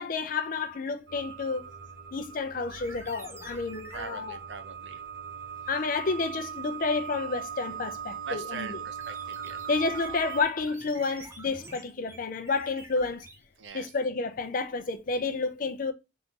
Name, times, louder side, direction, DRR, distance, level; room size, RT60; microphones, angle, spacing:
voice 1, 0.0-1.6 2.1-4.4 5.7-8.8 9.7-13.3 13.7-15.9, left 4 dB, 50° left, 0.4 m, -30 dB
sound 1, 1.1-10.4, right 8 dB, 65° right, 1.0 m, -40 dB
sound 2, 2.7-4.1 9.0-13.7, right 2 dB, 15° right, 0.6 m, -47 dB
voice 2, 3.9-5.0 8.2-9.6 13.6-13.9, right 5 dB, 90° right, 0.5 m, -41 dB
3.6 x 2.5 x 2.8 m
head